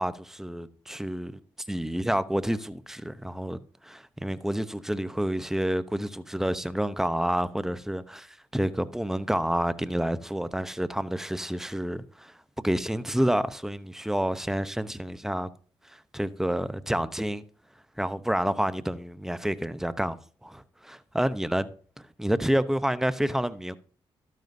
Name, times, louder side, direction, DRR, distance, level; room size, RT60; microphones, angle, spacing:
voice 1, 0.0-1.3 1.7-12.3 12.6-15.5 16.1-17.4 18.0-20.2 20.4-21.7 22.2-23.8, right 1 dB, 5° right, 0.8 m, -29 dB
12.5 x 9.4 x 2.7 m
supercardioid pair, 50°, 11 cm